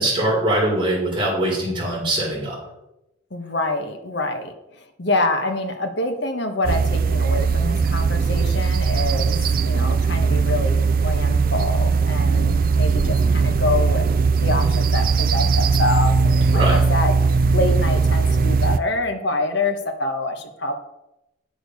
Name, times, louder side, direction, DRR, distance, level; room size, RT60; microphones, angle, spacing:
voice 1, 0.0-2.6 16.5-16.8, right 1 dB, 25° right, -4 dB, 3.6 m, -22 dB
voice 2, 3.3-14.1 14.4-17.2 17.5-20.7, left 2 dB, 55° left, 5 dB, 1.2 m, -26 dB
sound 1, 6.6-18.8, right 4 dB, 45° right, 0.4 m, -19 dB
8.7 x 6.5 x 5.4 m, 0.90 s
head